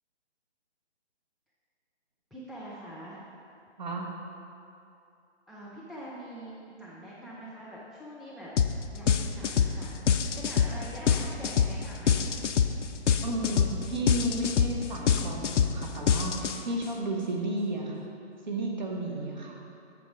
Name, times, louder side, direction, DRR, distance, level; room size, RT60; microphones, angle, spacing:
voice 1, 2.3-3.2 5.5-10.0 10.4-12.3 19.0-19.7, equal, ahead, -7 dB, 0.3 m, -44 dB
voice 2, 3.8-4.1 13.2-18.1 18.5-19.6, right 1 dB, 40° right, 0 dB, 1.1 m, -33 dB
sound 1, 8.6-8.8 9.1-16.8, left 7 dB, 85° left, 0.6 m, -25 dB
7.5 x 6.9 x 4.8 m, 2.7 s
hypercardioid pair, 170°, 35 cm